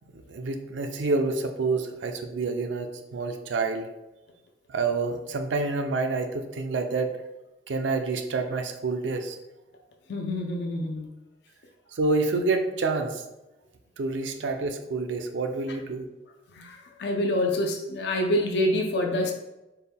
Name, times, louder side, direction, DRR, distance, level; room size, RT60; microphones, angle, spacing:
voice 1, 0.1-3.9 4.7-7.1 7.7-9.4 11.9-13.2 14.0-16.1, right 3 dB, 80° right, 6 dB, 0.5 m, -28 dB
voice 2, 10.1-11.1 16.5-19.3, left 1 dB, 60° left, 3 dB, 0.4 m, -26 dB
4.4 x 2.2 x 3.4 m, 0.99 s
head